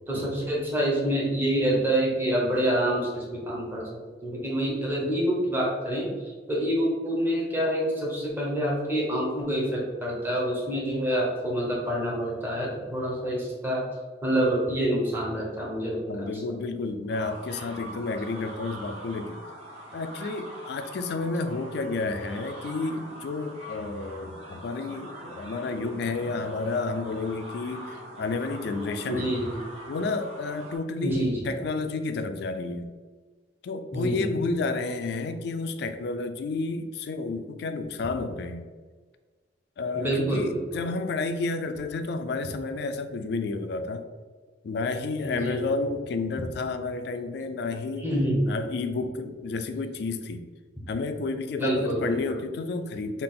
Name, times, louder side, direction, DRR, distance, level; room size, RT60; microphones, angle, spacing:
voice 1, 0.1-3.8 4.2-6.1 6.5-13.8 14.2-16.4 29.0-29.6 31.0-31.5 33.9-34.3 39.9-40.8 45.2-45.7 48.0-48.5 51.6-52.4, right 1 dB, 10° right, -4 dB, 0.9 m, -27 dB
voice 2, 16.1-19.4 19.9-29.3 29.9-32.9 33.6-38.7 39.8-44.1 44.6-48.1 48.5-50.4 50.9-53.2, left 3 dB, 65° left, 9 dB, 0.3 m, -31 dB
sound 1, 17.1-30.8, right 1 dB, 35° right, 0.9 m, -43 dB
3.6 x 2.5 x 3.7 m, 1.4 s
head